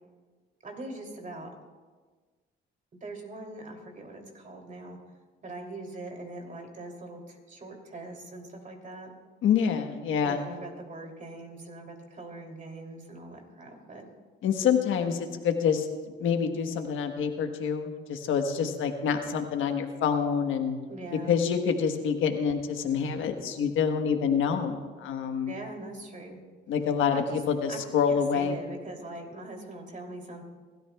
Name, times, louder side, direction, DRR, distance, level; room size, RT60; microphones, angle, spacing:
voice 1, 0.6-1.5 2.9-5.0 5.4-9.1 10.2-14.0 20.9-21.4 25.4-26.4 27.1-27.4 27.7-27.8 28.1-30.4, right 2 dB, 40° right, 2 dB, 3.0 m, -42 dB
voice 2, 9.4-10.4 14.4-15.9 16.2-20.8 21.3-25.5 26.7-28.6, left 7 dB, 80° left, 5 dB, 1.3 m, -27 dB
26.0 x 13.5 x 2.3 m, 1.4 s
cardioid pair, 90°, 20 cm